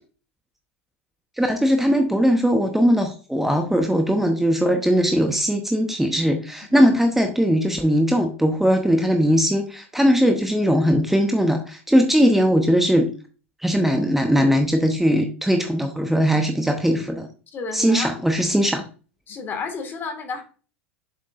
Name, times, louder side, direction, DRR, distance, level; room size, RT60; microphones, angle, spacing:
voice 1, 1.4-13.1 13.6-17.3 17.7-18.8, equal, 5° right, 5 dB, 1.0 m, -19 dB
voice 2, 17.5-18.1 19.3-20.4, left 5 dB, 30° left, 6 dB, 1.9 m, -31 dB
7.5 x 6.4 x 2.5 m, 0.36 s
figure-of-eight pair, 85°, 7 cm